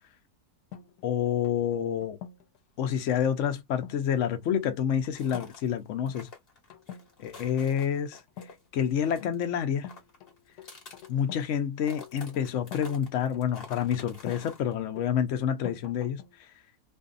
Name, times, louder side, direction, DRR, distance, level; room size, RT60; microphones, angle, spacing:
sound 1, 0.7-2.6 3.8-4.1 4.4-4.7 5.1-5.5 5.8-6.2 6.7-7.1 8.3-9.0 9.8-11.5 11.8-14.5 15.0-16.4, left 8 dB, 85° left, 1.2 m, -46 dB
voice 1, 1.0-2.2 2.8-6.3 7.2-8.2 8.7-9.9 11.1-16.2, left 8 dB, 60° left, 0.9 m, -28 dB
sound 2, 5.0-5.7 6.1-8.6 8.9-9.5 9.7-11.6 11.8-14.7, left 4 dB, 40° left, 1.2 m, -48 dB
2.6 x 2.5 x 2.4 m
omnidirectional pair, 1.6 m